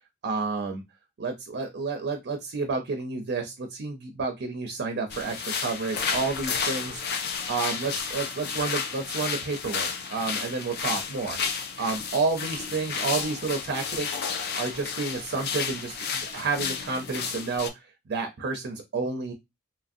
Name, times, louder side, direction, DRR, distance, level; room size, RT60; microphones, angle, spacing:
voice 1, 0.2-0.8 1.2-11.4 11.8-19.3, right 4 dB, 50° right, 4 dB, 0.4 m, -30 dB
sound 1, 5.1-17.7, left 6 dB, 50° left, 0.4 m, -32 dB
2.9 x 2.5 x 2.5 m, 0.21 s
head